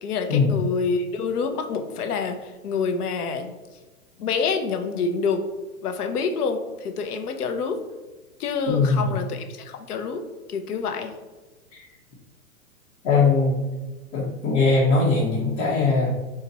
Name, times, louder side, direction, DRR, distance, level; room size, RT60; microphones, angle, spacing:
voice 1, 0.0-3.5 4.2-5.4 5.8-7.8 8.4-10.2 10.5-11.1, left 5 dB, 75° left, 6 dB, 0.8 m, -27 dB
voice 2, 8.7-9.1 11.7-11.8 13.0-13.6 14.1-16.1, left 4 dB, 45° left, -7 dB, 1.1 m, -20 dB
4.1 x 2.5 x 4.1 m, 1.2 s
hypercardioid pair, 150°, 45 cm